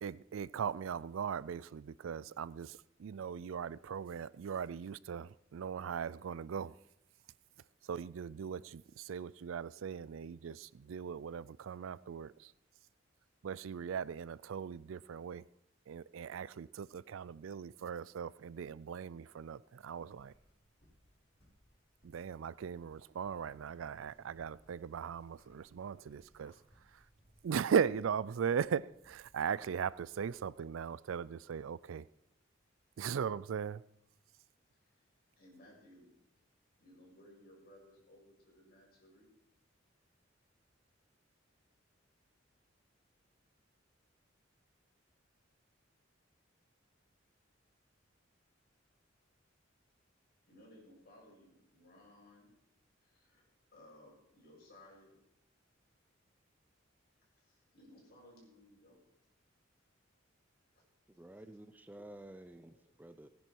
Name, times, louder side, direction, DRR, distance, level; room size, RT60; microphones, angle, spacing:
voice 1, 0.0-6.7 7.8-12.5 13.4-15.5 15.9-20.3 22.0-26.5 26.9-27.0 27.4-32.1 33.0-33.8, right 7 dB, 85° right, 0.4 m, -38 dB
sound 1, 19.8-30.7, equal, 35° left, 6.7 m, -69 dB
voice 2, 35.4-36.1 36.8-39.3 50.5-52.5 53.0-53.4 53.7-55.2 57.3-59.0 62.4-62.8, left 1 dB, 50° left, 6.7 m, -60 dB
voice 3, 61.1-63.3, right 1 dB, 10° right, 0.4 m, -52 dB
17.5 x 10.5 x 4.6 m
head